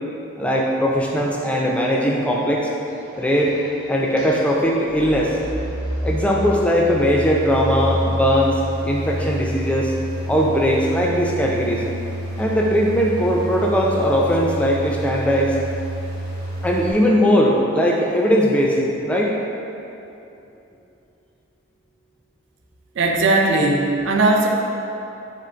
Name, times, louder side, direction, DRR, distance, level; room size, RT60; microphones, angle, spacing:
voice 1, 0.4-2.7 3.2-3.6 3.9-5.4 6.0-8.6 8.8-9.9 10.3-11.8 12.4-15.6 16.6-19.4, equal, 5° left, -2 dB, 0.3 m, -19 dB
sound 1, 2.9-16.9, equal, 45° right, 1.1 m, -29 dB
voice 2, 22.9-24.5, right 2 dB, 65° right, 1 dB, 0.4 m, -18 dB
3.7 x 3.2 x 4.3 m, 2.8 s
head